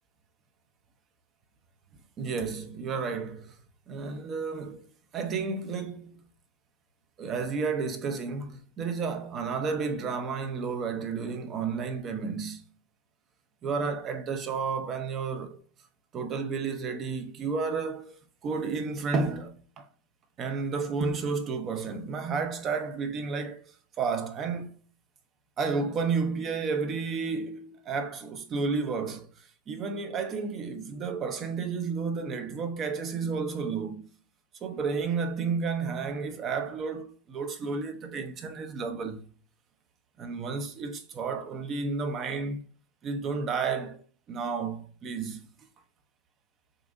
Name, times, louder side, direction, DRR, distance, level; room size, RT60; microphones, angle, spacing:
voice 1, 2.2-3.6 3.9-4.9 5.1-6.2 7.2-12.6 13.6-15.6 16.1-19.9 20.4-23.6 24.0-24.8 25.6-29.3 29.7-34.1 34.6-39.3 40.2-42.7 43.0-44.0 44.3-45.5, right 5 dB, 25° right, 0.6 m, -31 dB
6.6 x 2.6 x 2.5 m
supercardioid pair, 150°, 0 cm